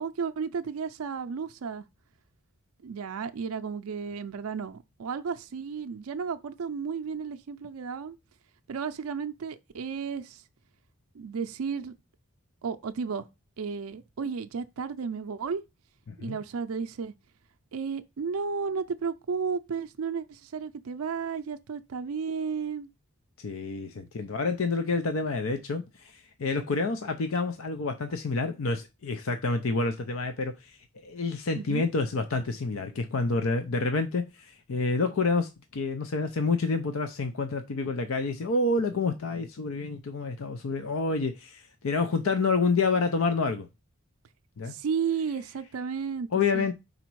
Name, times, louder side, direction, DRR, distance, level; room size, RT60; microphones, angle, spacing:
voice 1, 0.0-1.8 2.8-8.2 8.7-10.4 11.1-11.9 12.6-13.3 13.6-15.6 16.2-17.1 17.7-22.9 31.5-31.9 44.7-46.3 46.5-46.7, right 6 dB, 80° right, 0.4 m, -33 dB
voice 2, 16.1-16.4 23.4-30.8 31.0-43.7 44.6-44.7 46.3-46.7, left 3 dB, 70° left, 0.5 m, -28 dB
5.0 x 4.1 x 4.6 m
head